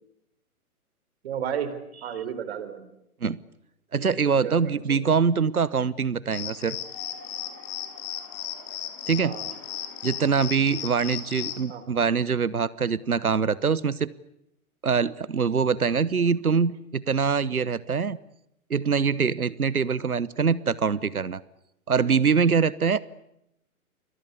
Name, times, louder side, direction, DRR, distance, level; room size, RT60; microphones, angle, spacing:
voice 1, 1.2-1.7 2.0-2.8 4.3-5.0 9.2-9.5 11.7-11.8, right 8 dB, 45° right, 12 dB, 4.0 m, -33 dB
voice 2, 3.9-6.8 9.1-9.3 10.0-14.1 14.8-18.2 18.7-21.4 21.9-23.0, right 6 dB, 80° right, 21 dB, 1.0 m, -24 dB
sound 1, 6.3-11.7, left 11 dB, 25° left, 4.7 m, -36 dB
29.0 x 22.5 x 8.3 m, 0.81 s
figure-of-eight pair, 120°, 44 cm